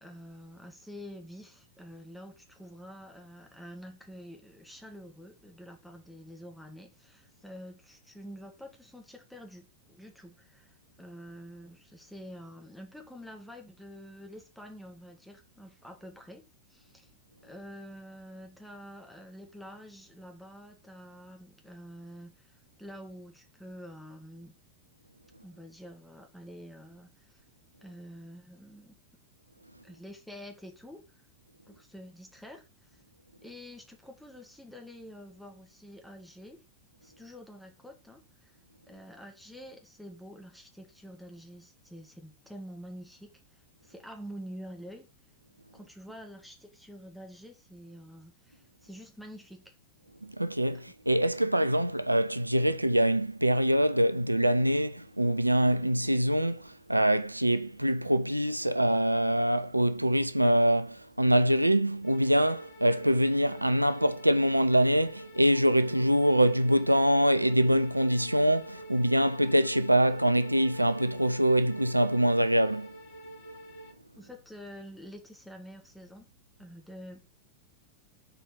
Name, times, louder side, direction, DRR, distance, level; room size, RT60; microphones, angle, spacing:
voice 1, 0.0-17.1 17.4-24.5 25.4-27.4 27.8-29.0 29.8-31.2 31.7-33.0 33.4-36.6 37.0-38.5 38.9-45.1 45.7-49.7 50.7-50.8 74.2-76.3 76.6-77.3, equal, ahead, 2.0 m, -47 dB
voice 2, 50.2-73.0, equal, 85° right, 0.4 m, -24 dB
sound 1, 62.0-73.9, right 1 dB, 55° left, 1.7 m, -48 dB
6.7 x 4.3 x 5.2 m
figure-of-eight pair, 90°, 0 cm